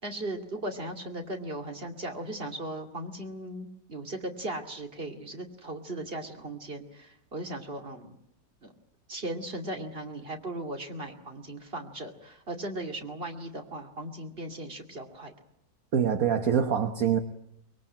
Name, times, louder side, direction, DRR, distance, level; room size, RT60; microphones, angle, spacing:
voice 1, 0.0-8.1 8.6-8.7 9.1-15.3, right 1 dB, 35° right, 4 dB, 2.7 m, -37 dB
voice 2, 15.9-17.2, right 8 dB, 60° right, 8 dB, 1.6 m, -24 dB
24.0 x 22.0 x 8.7 m, 0.76 s
omnidirectional pair, 1.7 m